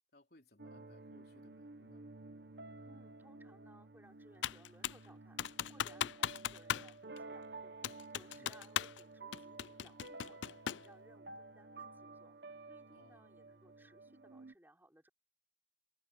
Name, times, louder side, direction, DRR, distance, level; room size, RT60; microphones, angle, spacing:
voice 1, 0.1-2.1 8.3-8.5 12.9-13.3, left 1 dB, 55° left, 3.6 m, -65 dB
sound 1, 0.6-14.5, right 3 dB, 65° right, 1.2 m, -53 dB
voice 2, 2.8-15.1, right 1 dB, 10° right, 5.7 m, -64 dB
Computer keyboard, 4.4-5.1 5.4-6.9 7.2-7.3 7.8-9.0 9.3-10.9, left 10 dB, 80° left, 0.4 m, -38 dB
head